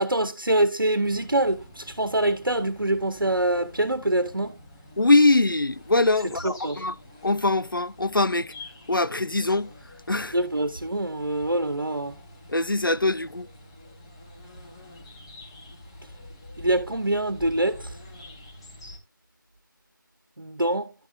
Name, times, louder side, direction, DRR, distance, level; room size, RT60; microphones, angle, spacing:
voice 1, 0.0-4.6 6.4-6.8 10.3-12.2 16.6-18.0 20.4-20.9, right 1 dB, 75° right, 1.2 m, -25 dB
sound 1, 1.0-19.0, left 1 dB, 15° left, 0.9 m, -47 dB
voice 2, 5.0-7.0 7.2-8.5 8.9-9.7 10.1-10.4 12.5-13.5, left 2 dB, 80° left, 0.6 m, -22 dB
11.0 x 7.0 x 2.5 m
figure-of-eight pair, 165°, 11 cm